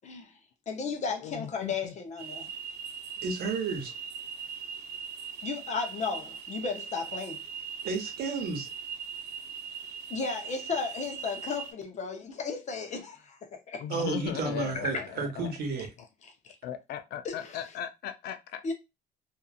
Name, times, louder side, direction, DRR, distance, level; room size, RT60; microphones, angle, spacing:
voice 1, 0.7-2.5 5.4-7.4 10.1-13.8 14.9-15.0 16.4-16.5 17.2-17.6 18.6-18.7, left 5 dB, 45° left, 0.7 m, -34 dB
voice 2, 1.2-1.9 13.8-15.5 16.6-18.6, left 10 dB, 70° left, 0.5 m, -37 dB
sound 1, 2.2-11.7, right 7 dB, 85° right, 0.7 m, -40 dB
voice 3, 3.2-3.9 7.8-8.7 13.9-15.9, right 4 dB, 65° right, 1.0 m, -32 dB
2.6 x 2.5 x 2.4 m
cardioid pair, 110°, 17 cm